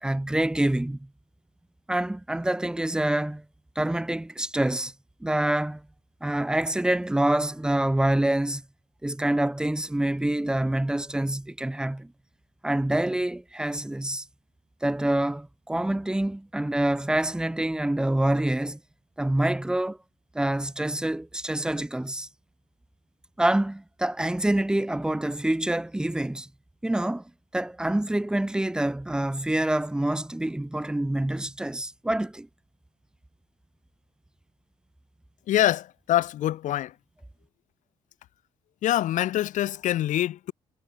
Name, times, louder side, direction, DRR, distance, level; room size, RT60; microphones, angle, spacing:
voice 1, 0.0-1.0 1.9-3.4 3.7-4.9 5.2-5.8 6.2-8.6 9.0-12.1 12.6-14.2 14.8-18.8 19.2-20.0 20.3-22.3 23.4-26.5 26.8-27.2 27.5-32.5, right 1 dB, 5° right, 3.0 m, -26 dB
voice 2, 35.5-36.9 38.8-40.5, left 13 dB, 75° left, 5.6 m, -25 dB
cardioid pair, 175°, 13 cm